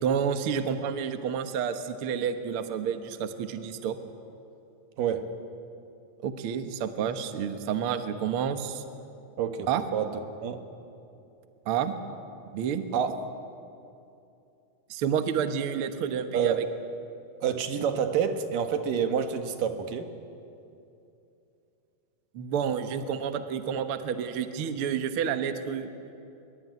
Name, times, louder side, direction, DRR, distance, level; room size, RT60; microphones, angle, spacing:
voice 1, 0.0-4.0 6.2-8.8 9.7-9.8 11.7-11.9 12.5-12.8 14.9-16.7 22.3-25.9, right 7 dB, 55° right, 8 dB, 1.7 m, -29 dB
voice 2, 9.4-10.1 10.4-10.6 12.9-13.2 16.3-16.6 17.4-20.1, right 7 dB, 85° right, 7 dB, 3.1 m, -28 dB
23.5 x 21.5 x 9.5 m, 2.7 s
omnidirectional pair, 3.7 m